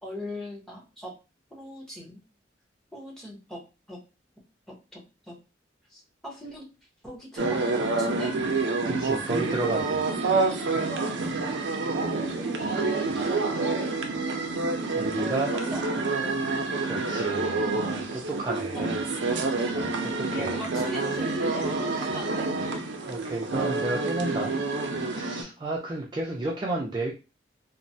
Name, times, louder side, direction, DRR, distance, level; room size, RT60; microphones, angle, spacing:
voice 1, 0.0-1.1 1.5-2.2 2.9-3.6 3.9-4.0 4.9-5.0 5.3-5.4 5.9-6.6 7.0-8.3 12.3-13.4 15.2-15.8 18.5-18.9 20.3-22.5, equal, 5° left, -3 dB, 0.8 m, -39 dB
sound 1, 7.4-25.4, right 3 dB, 85° right, 0.5 m, -28 dB
voice 2, 8.8-10.0 14.9-15.5 16.8-18.9 19.7-20.5 23.1-24.5 25.1-27.1, right 2 dB, 25° right, -2 dB, 0.4 m, -32 dB
3.0 x 2.1 x 2.6 m, 0.29 s
head